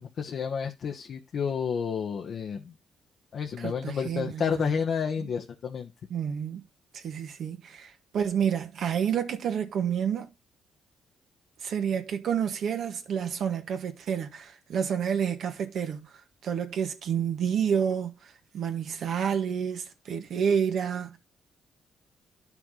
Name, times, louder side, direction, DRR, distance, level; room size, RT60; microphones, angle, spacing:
voice 1, 0.0-2.7 3.3-5.9, left 6 dB, 60° left, 1.1 m, -30 dB
voice 2, 3.6-4.7 5.2-5.3 6.1-6.6 6.9-10.3 11.6-21.2, right 8 dB, 65° right, 1.7 m, -29 dB
10.5 x 6.0 x 3.8 m
cardioid pair, 90°, 0 cm